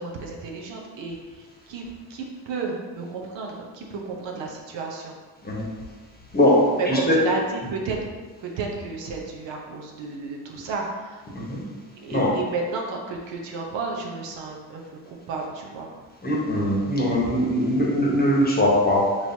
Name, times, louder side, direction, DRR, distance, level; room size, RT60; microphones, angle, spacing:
voice 1, 0.0-5.1 6.7-8.0 8.4-11.2 12.0-15.9, right 4 dB, 65° right, -1 dB, 0.8 m, -32 dB
voice 2, 6.3-7.2 11.3-11.6 12.1-12.3 16.2-19.2, left 1 dB, 20° left, -4 dB, 1.1 m, -21 dB
4.1 x 3.1 x 2.7 m, 1.4 s
supercardioid pair, 75°, 48 cm